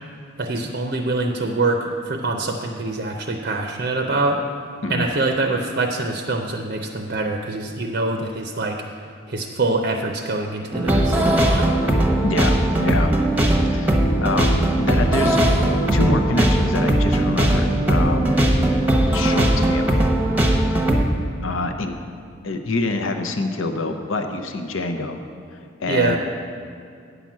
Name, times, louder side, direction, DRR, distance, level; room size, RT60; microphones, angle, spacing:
voice 1, 0.4-4.4 4.9-8.8 9.3-11.8 25.9-26.2, right 2 dB, 45° right, 3 dB, 0.6 m, -24 dB
sound 1, 10.7-21.0, right 1 dB, 10° right, 0.9 m, -19 dB
voice 2, 12.2-13.2 13.7-15.4 15.9-18.3 19.1-20.0 21.4-21.9 22.4-25.2 25.5-26.2, left 2 dB, 75° left, 6 dB, 0.8 m, -26 dB
9.5 x 5.9 x 7.4 m, 2.3 s
head